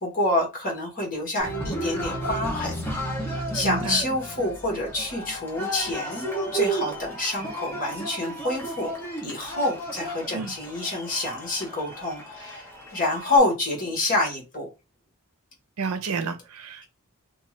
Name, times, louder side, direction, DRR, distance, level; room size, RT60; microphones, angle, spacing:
voice 1, 0.0-2.8 3.5-6.3 6.5-8.9 9.2-14.7, left 2 dB, 40° left, 1.3 m, -27 dB
Cheering, 1.4-13.4, right 1 dB, 10° left, 0.9 m, -33 dB
voice 2, 3.6-4.0 10.3-10.5 15.8-16.9, right 5 dB, 85° right, 0.6 m, -30 dB
2.8 x 2.4 x 3.1 m
head